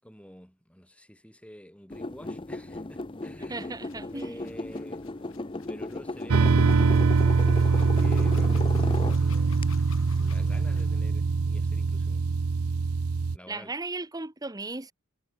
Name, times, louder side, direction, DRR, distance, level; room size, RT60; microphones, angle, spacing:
voice 1, 0.0-3.8 4.1-5.0 5.7-9.6 10.2-12.3 13.3-13.7, equal, 5° left, 7.4 m, -48 dB
sound 1, 1.9-9.6, left 2 dB, 25° left, 0.7 m, -36 dB
sound 2, 3.1-11.0, left 6 dB, 65° left, 5.7 m, -53 dB
voice 2, 3.5-4.5 13.5-14.9, right 3 dB, 15° right, 1.1 m, -36 dB
sound 3, 6.3-13.4, right 4 dB, 85° right, 0.6 m, -23 dB
head